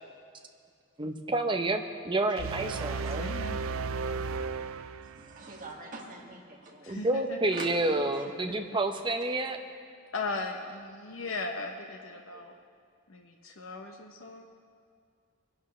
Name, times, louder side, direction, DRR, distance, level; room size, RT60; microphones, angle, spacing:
voice 1, 1.0-3.3 6.9-9.6, right 2 dB, 25° right, 4 dB, 0.8 m, -29 dB
sound 1, 2.4-5.6, right 4 dB, 80° right, 0.5 m, -34 dB
voice 2, 2.9-3.6 6.8-7.6 10.1-12.6 13.1-14.5, left 3 dB, 70° left, 2 dB, 0.9 m, -38 dB
voice 3, 5.0-7.0 7.5-7.7, right 3 dB, 40° right, -2 dB, 1.9 m, -44 dB
24.0 x 11.0 x 3.3 m, 2.2 s
head